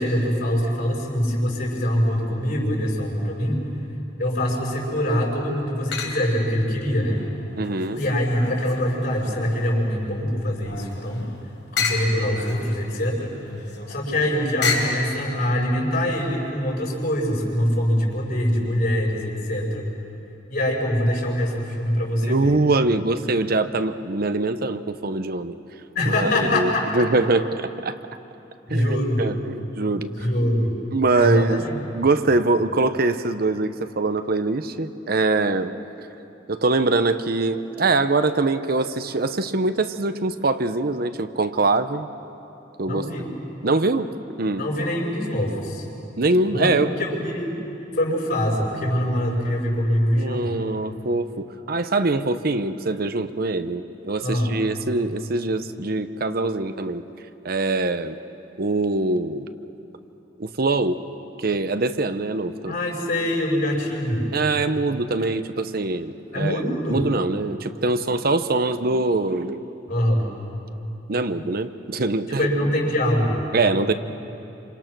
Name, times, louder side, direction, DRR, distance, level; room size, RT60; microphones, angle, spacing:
voice 1, 0.0-3.7 4.2-7.2 7.9-11.2 11.7-13.3 13.9-19.9 20.5-22.6 25.9-26.9 28.7-29.3 30.1-30.7 31.1-32.1 42.8-43.3 44.6-45.8 46.5-47.5 47.9-50.6 54.2-54.5 62.7-64.3 66.3-67.0 69.9-70.3 72.4-73.5, equal, 55° left, -1 dB, 5.9 m, -24 dB
sound 1, 4.4-5.0 5.9-6.5 7.0-9.7 10.1-15.0, left 4 dB, 85° left, 4.7 m, -31 dB
voice 2, 7.6-8.0 22.2-25.6 26.2-28.0 28.7-30.3 30.9-31.6 31.9-35.7 36.5-42.1 42.8-43.0 43.6-44.1 44.4-44.6 46.2-46.9 50.2-57.0 57.4-58.2 58.6-59.5 60.4-61.0 61.4-62.8 64.3-66.6 66.9-69.6 71.1-72.5 73.5-73.9, right 2 dB, 55° right, 10 dB, 0.9 m, -23 dB
28.0 x 26.5 x 6.1 m, 2.9 s
head